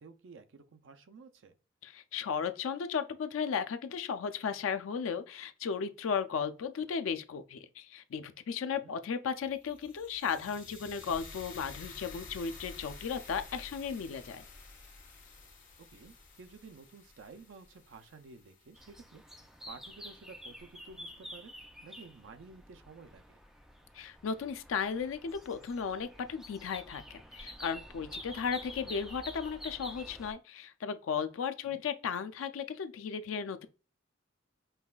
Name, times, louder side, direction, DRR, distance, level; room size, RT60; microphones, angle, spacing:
voice 1, 0.0-1.5 8.8-9.0 15.9-21.5 21.8-23.4 31.7-31.8, right 4 dB, 70° right, 0.4 m, -53 dB
voice 2, 1.8-14.4 23.9-33.7, left 6 dB, 90° left, 0.4 m, -35 dB
sound 1, 9.4-19.5, left 3 dB, 45° left, 1.3 m, -51 dB
sound 2, 18.7-30.3, equal, ahead, 0.4 m, -49 dB
5.5 x 2.3 x 2.3 m
head